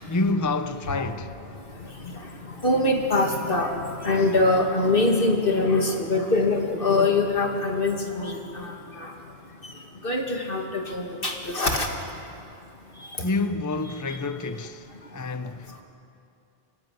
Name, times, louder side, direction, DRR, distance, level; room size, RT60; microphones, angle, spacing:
voice 1, 0.1-1.3 13.2-15.8, left 3 dB, 20° left, 0.6 m, -28 dB
voice 2, 2.6-3.7 4.0-8.7 9.0-9.1 10.0-11.9, left 2 dB, 60° left, 2.5 m, -23 dB
25.0 x 16.5 x 9.4 m
omnidirectional pair, 1.0 m